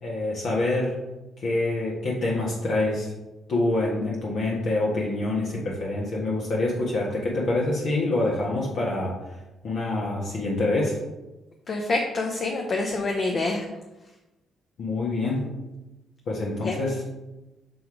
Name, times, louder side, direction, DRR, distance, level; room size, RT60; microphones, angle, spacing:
voice 1, 0.0-0.9 1.4-3.1 3.5-9.1 9.6-11.0 14.8-15.5 16.3-17.0, left 2 dB, 65° left, -4 dB, 1.5 m, -26 dB
voice 2, 11.7-13.6 16.6-16.8, left 2 dB, 45° left, 1 dB, 0.8 m, -26 dB
6.3 x 3.5 x 4.8 m, 1.0 s
cardioid pair, 90°, 0 cm